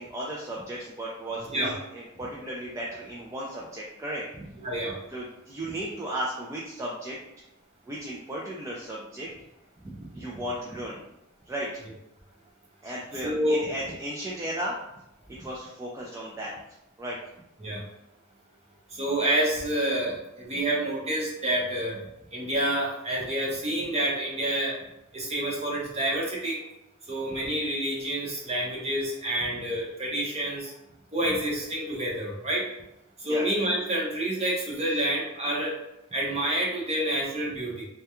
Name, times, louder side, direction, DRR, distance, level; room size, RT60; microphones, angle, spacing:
voice 1, 0.0-4.4 5.1-7.2 7.9-9.3 9.8-11.0 11.5-11.7 12.8-14.7 15.3-16.5 17.0-17.2 29.5-29.6 33.2-33.4, right 1 dB, 15° right, -5 dB, 0.3 m, -35 dB
voice 2, 4.6-4.9 13.2-13.6 17.6-17.8 18.9-22.0 22.3-24.7 25.1-26.6 27.1-30.7 31.1-32.6 33.2-35.7 36.1-37.8, right 1 dB, 30° right, -3 dB, 0.7 m, -28 dB
2.3 x 2.2 x 2.8 m, 0.88 s
head